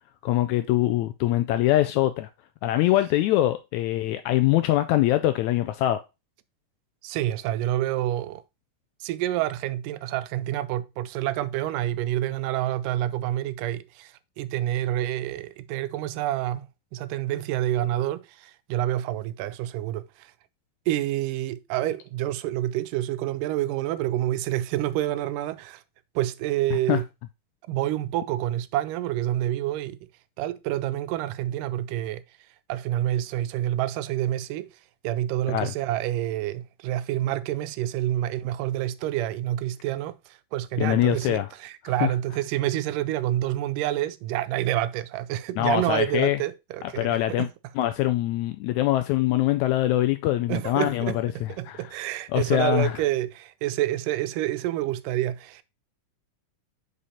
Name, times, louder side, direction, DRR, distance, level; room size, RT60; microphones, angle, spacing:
voice 1, 0.2-2.3 2.6-6.0 26.9-27.0 35.5-35.7 40.8-41.5 42.0-42.1 45.6-46.4 47.0-47.5 47.8-51.3 51.7-51.8 52.3-52.9, left 14 dB, 80° left, 1.7 m, -23 dB
voice 2, 7.0-8.4 9.0-20.3 20.9-25.8 26.2-27.1 27.7-30.0 30.4-32.2 32.7-34.7 35.0-47.5 50.5-51.2 51.5-55.6, right 13 dB, 90° right, 2.2 m, -28 dB
5.5 x 4.9 x 4.2 m
omnidirectional pair, 3.7 m